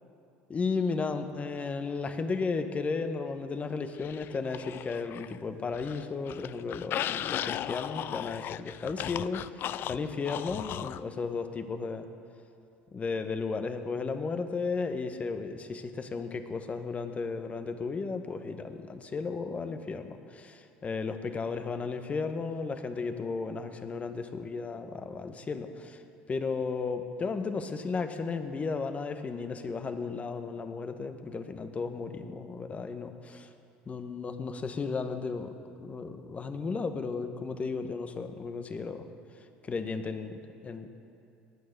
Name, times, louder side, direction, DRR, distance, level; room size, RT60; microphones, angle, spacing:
voice 1, 0.5-12.1 12.9-26.0 26.3-33.5 33.9-39.1 39.6-40.9, left 4 dB, 30° left, 8 dB, 1.2 m, -34 dB
sound 1, 4.0-5.4 5.7-11.0, left 11 dB, 50° left, 0.4 m, -36 dB
19.0 x 8.8 x 6.8 m, 2.6 s
hypercardioid pair, 80°, 5 cm